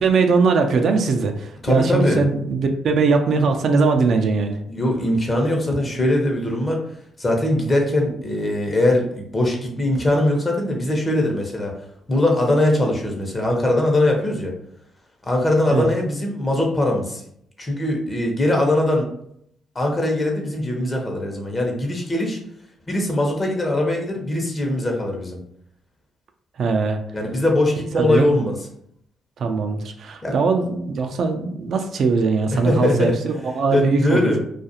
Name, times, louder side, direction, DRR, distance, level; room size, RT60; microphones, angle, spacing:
voice 1, 0.0-4.6 15.7-15.9 26.6-27.0 27.9-28.3 29.4-34.3, right 4 dB, 65° right, 5 dB, 0.3 m, -20 dB
voice 2, 1.6-2.2 4.7-6.8 7.2-11.7 12.1-14.5 15.3-17.2 17.6-19.1 19.7-22.4 22.9-25.4 27.1-28.6 30.2-30.4 32.5-33.1 33.7-34.4, left 1 dB, 35° left, 1 dB, 0.8 m, -21 dB
2.4 x 2.4 x 2.7 m, 0.71 s
hypercardioid pair, 50°, 0 cm